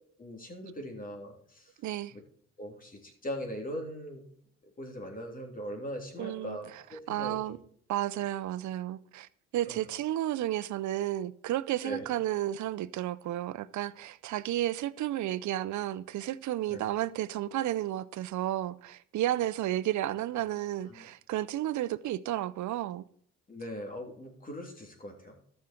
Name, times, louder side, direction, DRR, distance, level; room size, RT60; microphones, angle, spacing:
voice 1, 0.2-1.7 2.1-2.2 2.6-4.2 4.8-7.6 9.7-9.8 11.8-12.1 16.7-16.8 20.9-21.1 23.5-25.3, equal, 30° left, 3.2 m, -40 dB
voice 2, 1.8-2.1 6.2-6.6 7.1-7.6 7.9-23.0, right 13 dB, 70° right, 0.6 m, -32 dB
13.0 x 6.5 x 4.4 m
cardioid pair, 90°, 30 cm